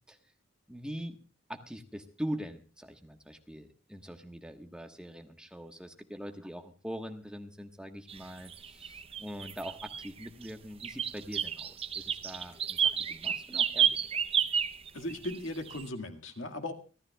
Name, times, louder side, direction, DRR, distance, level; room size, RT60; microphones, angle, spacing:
voice 1, 0.7-1.2 1.5-14.1, equal, 5° right, 4 dB, 1.3 m, -42 dB
sound 1, 8.1-8.2 8.5-10.5 10.8-15.4 15.7-15.8, right 8 dB, 30° right, 0.7 m, -31 dB
voice 2, 14.9-16.7, left 1 dB, 80° left, 5 dB, 1.9 m, -37 dB
29.0 x 13.0 x 2.3 m, 0.35 s
head